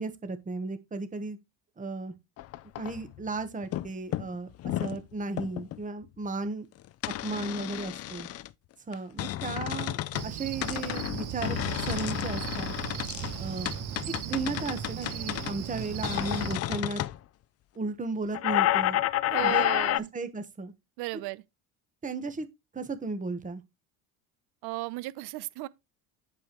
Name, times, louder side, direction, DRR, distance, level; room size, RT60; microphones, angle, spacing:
voice 1, 0.0-1.4 1.8-2.1 2.8-4.5 4.8-6.7 7.2-8.3 8.9-12.8 13.4-13.7 14.2-17.0 17.7-19.0 19.4-19.7 20.1-20.7 22.0-22.5 22.7-23.6, right 3 dB, 20° right, 1.2 m, -35 dB
sound 1, 2.4-3.3 3.6-3.9 4.1-5.0 5.4-5.8 7.0-8.5 8.9-10.3 10.6-17.2 18.3-20.0, left 14 dB, 40° left, 0.4 m, -31 dB
Cricket, 10.1-16.6, right 11 dB, 50° right, 1.1 m, -37 dB
voice 2, 19.3-20.1 21.0-21.4 24.6-25.7, right 20 dB, 70° right, 0.8 m, -34 dB
8.3 x 7.0 x 3.1 m
supercardioid pair, 105°, 41 cm